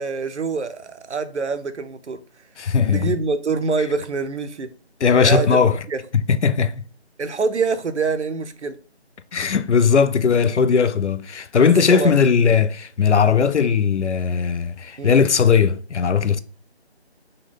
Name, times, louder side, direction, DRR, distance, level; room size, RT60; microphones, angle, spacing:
voice 1, 0.0-2.2 2.9-4.7 5.2-5.6 5.9-6.0 7.2-8.7 11.9-12.2 15.0-15.2, right 4 dB, 85° right, 0.6 m, -25 dB
voice 2, 2.6-3.2 5.0-5.8 6.1-6.8 9.3-16.4, left 6 dB, 90° left, 0.5 m, -18 dB
5.2 x 2.2 x 3.6 m
figure-of-eight pair, 165°, 34 cm